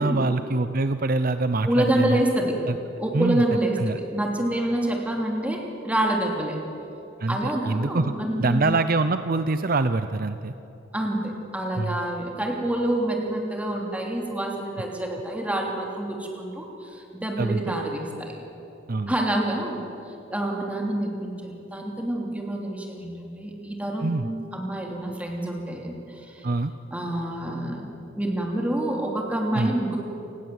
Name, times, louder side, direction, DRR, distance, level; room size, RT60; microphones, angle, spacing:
voice 1, 0.0-2.2 2.7-2.8 3.1-3.4 3.8-4.0 7.2-10.5 11.8-12.0 17.4-17.8 18.9-19.1 24.0-24.3 26.4-26.7 29.5-29.7, right 3 dB, 45° right, 10 dB, 0.6 m, -25 dB
voice 2, 1.6-2.6 3.0-6.6 7.3-8.6 10.9-18.3 19.1-19.8 20.3-24.3 24.5-26.4 26.9-30.0, right 1 dB, 5° right, 0 dB, 3.3 m, -27 dB
28.5 x 19.5 x 7.9 m, 3.0 s
head